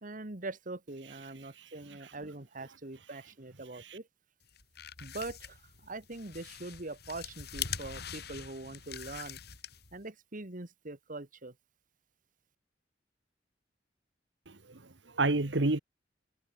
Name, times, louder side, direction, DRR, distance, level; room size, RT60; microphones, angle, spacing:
voice 1, 0.0-4.0 5.0-5.4 5.9-9.4 9.9-11.5, right 2 dB, 50° right, 2.0 m, -42 dB
voice 2, 1.3-2.1 3.7-4.0 14.5-15.8, right 2 dB, 75° right, 1.6 m, -32 dB
sound 1, 4.5-10.0, left 8 dB, 65° left, 4.8 m, -43 dB
head